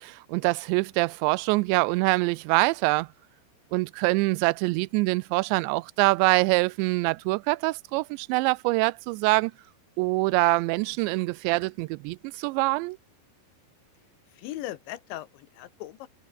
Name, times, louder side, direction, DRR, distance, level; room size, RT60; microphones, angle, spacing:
voice 1, 0.0-3.1 3.7-9.5 10.0-13.0, right 24 dB, 85° right, 2.8 m, -24 dB
voice 2, 14.3-16.1, left 14 dB, 85° left, 3.7 m, -38 dB
omnidirectional pair, 5.1 m